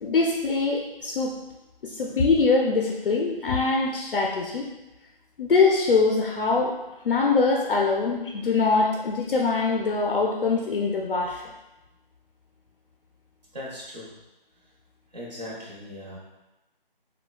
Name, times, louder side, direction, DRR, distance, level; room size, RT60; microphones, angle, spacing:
voice 1, 0.0-1.4 1.8-4.7 5.4-6.7 7.0-11.4, left 4 dB, 70° left, -1 dB, 0.5 m, -23 dB
voice 2, 13.5-14.1 15.1-16.2, left 1 dB, 45° right, -6 dB, 1.2 m, -38 dB
3.8 x 2.2 x 2.4 m, 1.0 s
hypercardioid pair, 175°, 29 cm